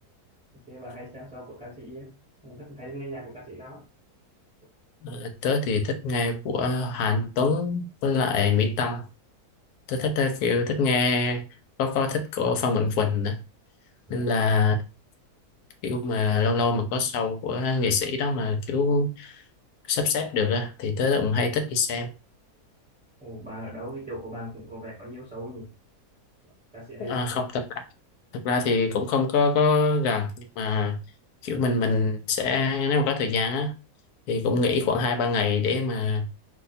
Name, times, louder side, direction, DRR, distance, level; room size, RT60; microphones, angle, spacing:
voice 1, 0.7-2.1 2.4-3.8 14.1-14.2 23.2-25.7 26.7-27.2, right 1 dB, 5° right, 0.9 m, -39 dB
voice 2, 5.0-9.0 9.9-11.4 11.8-13.4 14.1-14.8 15.8-19.4 19.9-22.1 27.0-27.6 28.3-31.0 31.4-33.7 34.3-36.3, left 4 dB, 80° left, 1.1 m, -25 dB
2.7 x 2.2 x 4.0 m
omnidirectional pair, 1.6 m